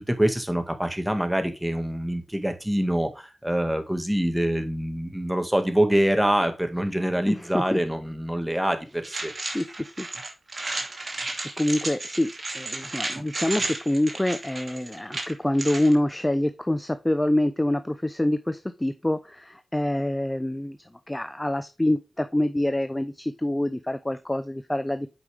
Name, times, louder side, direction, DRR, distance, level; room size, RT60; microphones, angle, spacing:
voice 1, 0.0-9.3, right 1 dB, 10° right, 7 dB, 1.8 m, -25 dB
voice 2, 7.3-7.8 9.5-10.1 11.6-20.8 21.1-25.1, left 1 dB, 15° left, 11 dB, 0.7 m, -26 dB
sound 1, 9.0-15.9, right 2 dB, 50° right, 2.6 m, -33 dB
8.2 x 5.5 x 3.4 m, 0.26 s
cardioid pair, 45°, 0 cm